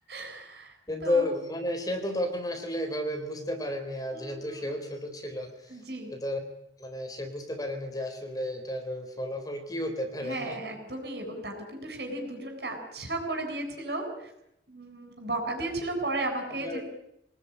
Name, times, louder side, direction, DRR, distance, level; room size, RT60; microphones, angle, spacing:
voice 1, 0.1-0.7 1.0-1.3 4.1-4.7 5.7-6.1 10.2-14.3 14.7-16.8, right 2 dB, 65° right, 4 dB, 7.5 m, -35 dB
voice 2, 0.9-5.8 6.1-6.4 6.8-10.6 16.6-16.8, left 1 dB, 20° left, 5 dB, 3.7 m, -32 dB
25.0 x 19.5 x 10.0 m, 0.77 s
head